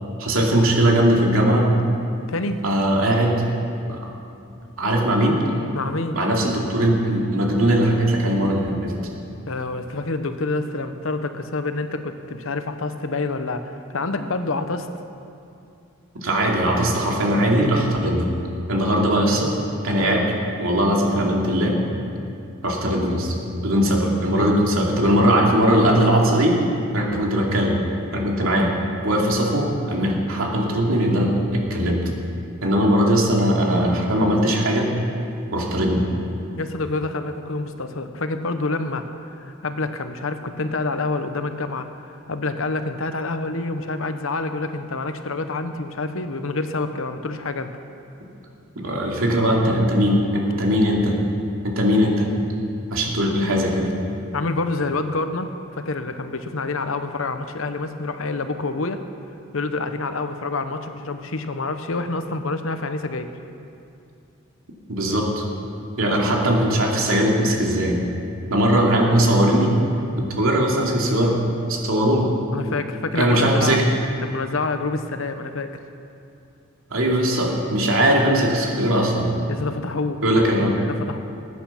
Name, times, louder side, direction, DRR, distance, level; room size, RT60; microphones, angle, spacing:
voice 1, 0.2-1.7 2.6-3.4 3.9-4.0 4.8-5.4 6.1-8.9 16.1-18.3 18.7-19.5 19.8-21.8 22.6-23.4 23.6-26.6 26.9-27.8 28.1-28.7 29.0-32.0 32.6-34.9 35.5-36.0 48.8-51.2 51.6-52.3 52.9-53.9 64.9-65.5 66.0-68.0 68.5-69.7 70.2-71.4 71.7-72.3 73.1-73.9 76.9-79.3 80.2-80.8, equal, 80° right, -1 dB, 2.6 m, -20 dB
voice 2, 2.3-2.6 5.7-6.2 9.5-14.9 36.6-39.0 39.3-47.7 54.3-59.0 59.5-63.3 72.5-73.8 74.2-75.8 79.5-80.2 80.6-81.2, left 3 dB, 75° left, 8 dB, 0.9 m, -27 dB
20.5 x 9.4 x 5.8 m, 2.6 s
head